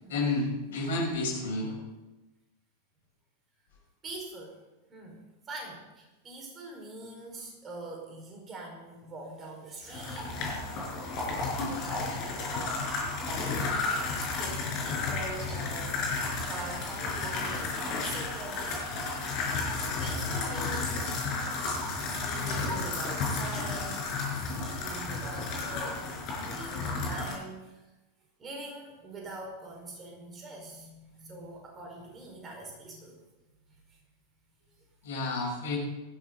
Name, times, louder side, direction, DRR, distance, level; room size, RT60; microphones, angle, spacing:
voice 1, 0.1-1.7 35.0-35.8, left 2 dB, 60° left, -2 dB, 6.5 m, -30 dB
voice 2, 4.0-4.6 4.9-10.5 11.6-12.8 13.1-13.9 14.4-18.8 20.0-21.2 22.1-24.1 24.6-26.1 26.4-27.9 28.4-33.2 33.9-34.0, right 2 dB, 25° right, 0 dB, 4.9 m, -43 dB
sound 1, 9.9-27.3, left 3 dB, 40° left, 5.8 m, -32 dB
18.5 x 15.0 x 4.0 m, 1.1 s
figure-of-eight pair, 90°, 0 cm